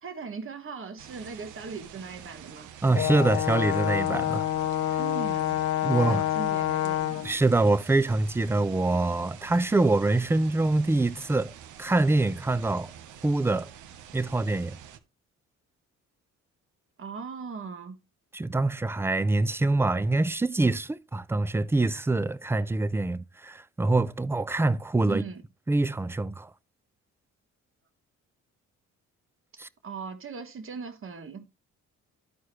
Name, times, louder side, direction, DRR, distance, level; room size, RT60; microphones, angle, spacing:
voice 1, 0.0-2.7 5.0-5.6 5.9-7.3 17.0-18.0 25.1-25.4 29.8-31.4, right 5 dB, 45° right, 1.5 m, -39 dB
sound 1, 1.0-15.0, right 9 dB, 75° right, 0.8 m, -47 dB
voice 2, 2.8-4.5 5.8-6.2 7.2-11.5 11.8-12.9 13.2-13.7 14.1-14.8 18.3-25.2 25.7-26.5 29.6-29.7, right 2 dB, 10° right, 0.3 m, -25 dB
Brass instrument, 2.9-7.3, left 12 dB, 55° left, 0.5 m, -27 dB
13.0 x 4.7 x 3.0 m
cardioid pair, 90°, 30 cm